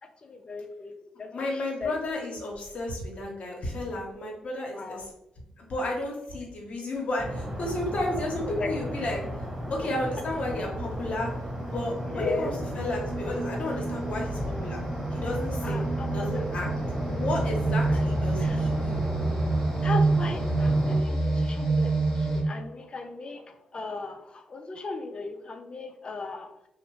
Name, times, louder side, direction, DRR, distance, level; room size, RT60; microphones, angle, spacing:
voice 1, 0.0-2.0 4.7-5.1 8.1-9.0 12.1-12.5 15.6-18.1 18.4-18.6 19.8-26.7, left 3 dB, 40° left, 6 dB, 0.4 m, -38 dB
voice 2, 1.3-5.0 5.6-9.2 9.7-11.3 11.6-14.8 15.1-15.9 16.1-16.7 17.1-19.0, left 1 dB, 60° left, 0 dB, 0.8 m, -32 dB
sound 1, 7.2-21.0, equal, 20° right, 1.2 m, -34 dB
sound 2, 7.8-8.0 8.7-22.4, right 3 dB, 25° left, 0.9 m, -29 dB
2.6 x 2.0 x 3.0 m, 0.81 s
supercardioid pair, 55°, 3 cm